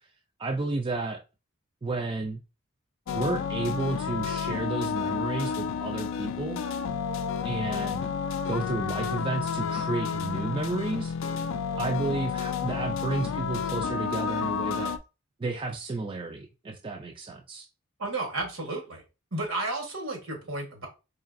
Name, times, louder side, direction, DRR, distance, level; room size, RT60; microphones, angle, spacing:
voice 1, 0.4-1.2 1.8-2.4 3.1-6.6 7.4-8.1 8.5-11.1 11.8-14.9 15.4-17.7, right 3 dB, 25° right, 0.3 m, -32 dB
sound 1, 3.1-15.0, left 6 dB, 70° left, 0.3 m, -31 dB
voice 2, 18.0-19.0 19.3-20.9, right 2 dB, 80° right, 1.4 m, -32 dB
3.9 x 3.2 x 2.5 m
head